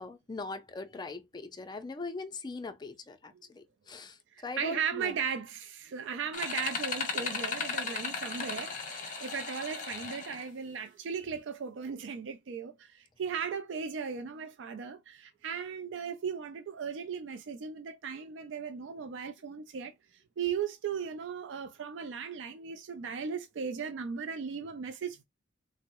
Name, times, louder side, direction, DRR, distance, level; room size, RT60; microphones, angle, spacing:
voice 1, 0.0-5.2, left 3 dB, 25° left, 0.4 m, -41 dB
voice 2, 4.6-19.9 20.4-25.2, right 6 dB, 80° right, 0.4 m, -37 dB
sound 1, 6.3-10.4, left 4 dB, 40° left, 0.7 m, -36 dB
3.5 x 2.0 x 2.9 m
head